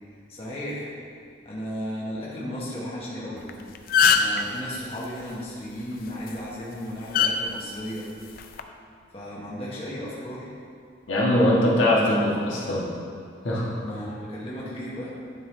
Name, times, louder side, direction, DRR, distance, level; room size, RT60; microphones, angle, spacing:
voice 1, 0.3-0.9 1.4-3.5 4.1-8.1 9.1-10.5 13.8-15.2, equal, 30° left, -7 dB, 1.1 m, -35 dB
sound 1, 3.4-3.5 3.8-4.4 6.1-6.3 7.1-7.3 8.4-8.6, left 7 dB, 50° left, 0.3 m, -19 dB
voice 2, 11.1-12.9 13.4-13.7, left 1 dB, 85° left, -6 dB, 1.4 m, -21 dB
10.5 x 3.6 x 3.3 m, 2.3 s
head